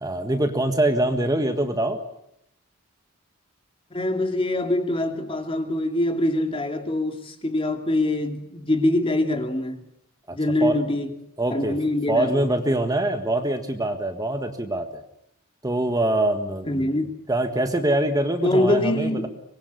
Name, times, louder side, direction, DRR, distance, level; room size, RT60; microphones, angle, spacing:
voice 1, 0.0-2.0 10.3-10.8 11.4-11.8 12.1-15.0 15.6-16.9 17.3-19.3, right 1 dB, 15° right, 1.7 m, -24 dB
voice 2, 3.9-9.8 10.3-11.1 11.5-12.4 16.7-17.1 18.4-19.3, left 1 dB, 25° left, 2.7 m, -24 dB
25.5 x 21.0 x 8.3 m
head